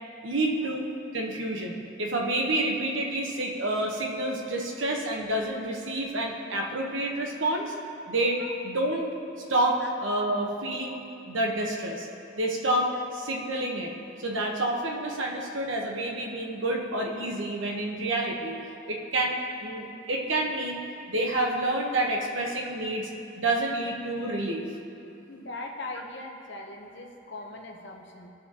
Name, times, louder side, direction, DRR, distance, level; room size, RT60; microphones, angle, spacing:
voice 1, 0.2-0.9 1.1-7.7 8.1-9.1 9.5-11.0 11.3-12.1 12.3-13.9 14.2-18.6 18.9-20.8 21.1-23.1 23.4-24.6, right 1 dB, 70° right, 0 dB, 1.1 m, -28 dB
voice 2, 25.3-28.3, left 2 dB, 60° left, 2 dB, 0.9 m, -40 dB
16.0 x 6.0 x 2.9 m, 2.7 s
head